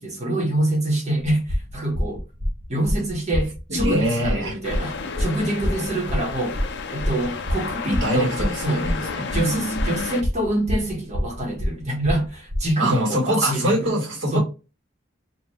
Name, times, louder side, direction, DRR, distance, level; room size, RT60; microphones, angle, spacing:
voice 1, 0.0-2.2 2.7-6.6 6.9-8.8 9.3-13.9 14.3-14.4, right 1 dB, 35° right, 1.2 m, -26 dB
sound 1, 1.2-12.7, equal, 65° right, 1.3 m, -27 dB
voice 2, 3.7-4.6 7.8-9.3 12.8-14.4, equal, 80° right, 1.6 m, -24 dB
sound 2, 4.6-10.2, left 4 dB, 60° left, 0.6 m, -31 dB
4.4 x 2.5 x 3.1 m
head